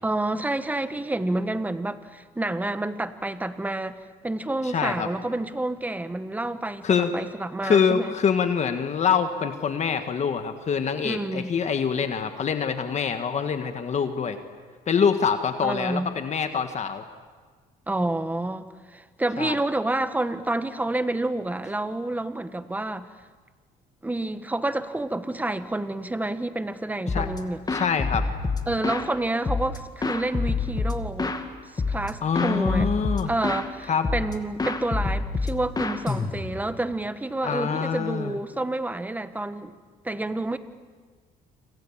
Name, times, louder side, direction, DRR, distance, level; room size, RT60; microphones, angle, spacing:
voice 1, 0.0-8.1 11.0-11.5 15.6-16.1 17.9-23.1 24.0-27.6 28.7-31.3 31.7-32.9 33.2-39.7 40.0-40.6, right 2 dB, 10° right, 11 dB, 1.3 m, -29 dB
voice 2, 4.6-5.1 6.8-7.1 7.6-14.4 14.9-17.0 19.4-19.6 27.1-27.3 27.7-28.3 32.2-33.3 33.9-34.1 37.4-38.4, left 6 dB, 40° left, 7 dB, 1.7 m, -25 dB
sound 1, 27.1-27.4 27.7-29.1 29.4-31.4 31.8-32.1 32.3-33.7 34.0-34.3 34.6-36.7, left 4 dB, 25° left, 2.3 m, -27 dB
28.0 x 27.0 x 7.4 m, 1.5 s
cardioid pair, 110°, 17 cm